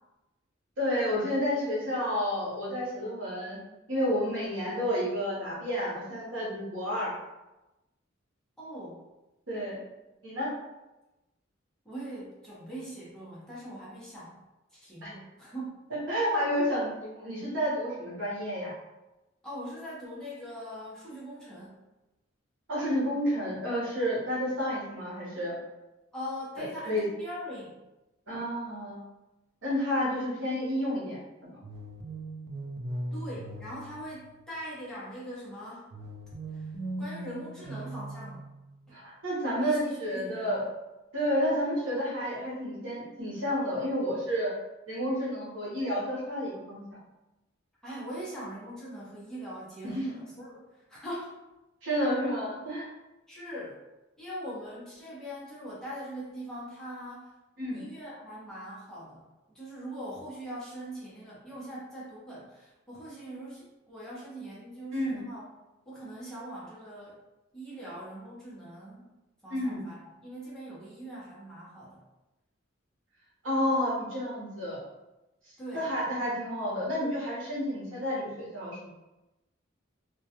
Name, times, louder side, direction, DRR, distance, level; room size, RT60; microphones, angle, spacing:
voice 1, 0.8-3.6 3.9-7.1 9.5-9.8 10.2-10.5 15.0-15.1 15.9-18.7 22.7-25.6 26.6-27.0 28.3-29.0 29.6-31.5 38.9-40.7 41.1-44.5 44.9-46.8 49.8-50.1 51.8-52.9 57.6-57.8 64.9-65.2 69.5-69.8 73.4-74.8 75.7-78.8, equal, 75° right, -5 dB, 0.9 m, -30 dB
voice 2, 8.6-9.0 11.8-14.4 14.7-15.8 19.4-21.8 26.1-27.8 33.1-35.9 36.5-36.7 37.0-38.5 39.6-40.6 47.8-51.4 53.3-53.8 54.2-57.3 57.7-59.2 59.5-65.4 65.9-67.2 67.5-69.1 69.4-72.0 75.6-75.9, equal, 5° left, -8 dB, 0.7 m, -41 dB
sound 1, 31.6-34.8 35.9-38.8, right 1 dB, 55° right, 0.4 m, -39 dB
2.2 x 2.2 x 2.8 m, 0.99 s
head